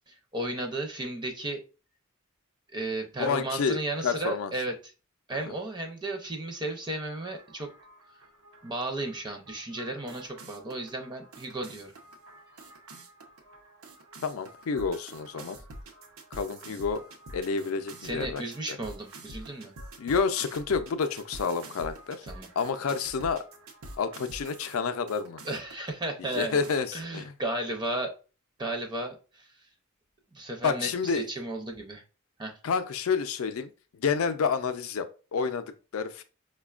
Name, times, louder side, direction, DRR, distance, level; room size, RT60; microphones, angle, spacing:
voice 1, 0.1-1.6 2.7-4.9 5.3-7.7 8.6-11.9 18.0-19.7 22.2-22.5 25.4-26.6 26.9-28.1 28.6-29.5 30.3-32.0 32.4-32.6, right 2 dB, 20° right, 0.5 m, -34 dB
voice 2, 3.2-3.8 4.0-4.5 5.5-5.6 14.2-15.6 16.3-17.0 17.3-18.4 20.0-22.2 22.6-23.4 24.0-25.4 26.3-27.3 30.6-31.2 32.6-33.7 34.0-36.2, left 5 dB, 80° left, 0.4 m, -29 dB
sound 1, 7.0-24.8 25.1-25.9 26.3-26.8, right 1 dB, 80° right, 0.7 m, -47 dB
4.8 x 2.2 x 2.3 m
head